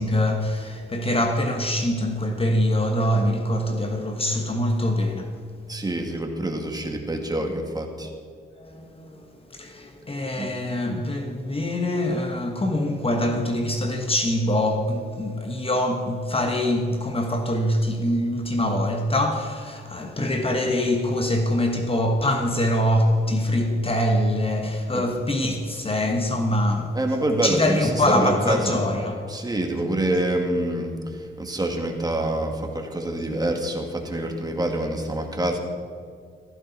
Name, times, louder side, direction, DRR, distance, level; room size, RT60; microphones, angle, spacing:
voice 1, 0.0-5.3 8.6-27.0 27.4-29.2, left 1 dB, 30° left, 1.4 m, -24 dB
voice 2, 5.7-8.1 10.4-10.5 24.9-25.0 26.9-28.8 29.3-35.6, right 1 dB, 20° right, 2.1 m, -26 dB
16.5 x 15.0 x 4.2 m
cardioid pair, 95°, 20 cm